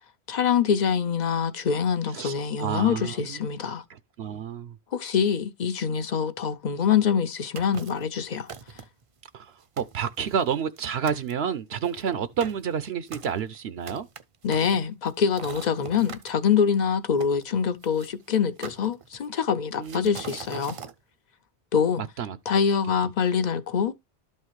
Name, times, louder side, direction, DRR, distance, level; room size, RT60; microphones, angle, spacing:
voice 1, 0.3-3.8 4.9-8.5 14.4-20.8 21.7-22.0 22.5-23.9, left 7 dB, 50° left, 0.6 m, -25 dB
voice 2, 2.1-3.4 3.9-4.8 9.3-9.5 9.8-14.1 19.8-20.2 22.0-22.4, right 7 dB, 75° right, 0.9 m, -30 dB
sound 1, 7.6-8.1 8.5-9.0 9.5-9.6 9.8-10.8 11.1-11.3 11.8-16.3 17.2-18.1 18.6-19.4 19.8-20.9, right 6 dB, 45° right, 0.5 m, -42 dB
12.0 x 5.5 x 3.1 m
omnidirectional pair, 1.1 m